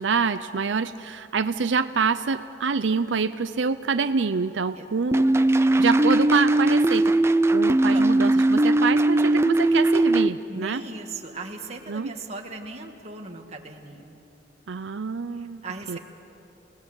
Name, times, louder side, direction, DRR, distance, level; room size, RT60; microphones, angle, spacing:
voice 1, 0.0-5.2 5.8-7.1 7.5-10.8 11.9-12.1 14.7-16.0, right 5 dB, 85° right, 11 dB, 0.6 m, -26 dB
sound 1, 5.1-10.3, right 2 dB, 15° right, 0.5 m, -19 dB
voice 2, 10.5-14.1 15.3-16.0, right 3 dB, 35° right, 3 dB, 1.9 m, -38 dB
29.0 x 18.5 x 7.9 m, 2.9 s
head